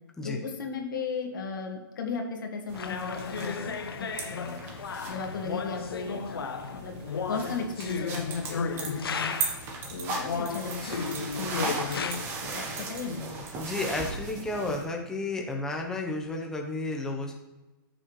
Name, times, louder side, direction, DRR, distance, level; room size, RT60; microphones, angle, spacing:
voice 1, 0.2-3.8 4.3-4.6 5.0-6.4 6.7-7.0 7.3-9.4 9.9-11.0 11.3-12.3 12.5-13.3, left 5 dB, 60° left, 2 dB, 1.8 m, -35 dB
sound 1, 2.7-9.7 10.2-12.2, left 5 dB, 85° left, 1.0 m, -34 dB
sound 2, 2.7-14.8, right 3 dB, 20° right, 1.1 m, -37 dB
voice 2, 13.6-17.4, left 2 dB, 5° left, 1 dB, 0.9 m, -32 dB
13.5 x 6.4 x 3.2 m, 1.1 s
hypercardioid pair, 165°, 12 cm